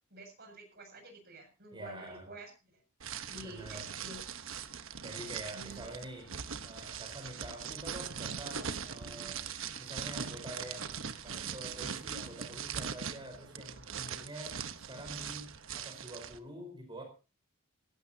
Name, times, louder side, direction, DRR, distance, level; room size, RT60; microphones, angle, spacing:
voice 1, 0.1-2.8 3.3-4.2 5.5-5.8, right 1 dB, 50° right, 7.3 m, -49 dB
voice 2, 1.7-2.3 3.4-3.9 5.0-6.3 6.6-9.5 9.8-14.6 14.9-17.0, right 1 dB, 25° right, 4.6 m, -47 dB
sound 1, 3.0-16.4, right 7 dB, 70° right, 1.2 m, -41 dB
18.5 x 17.5 x 2.9 m
head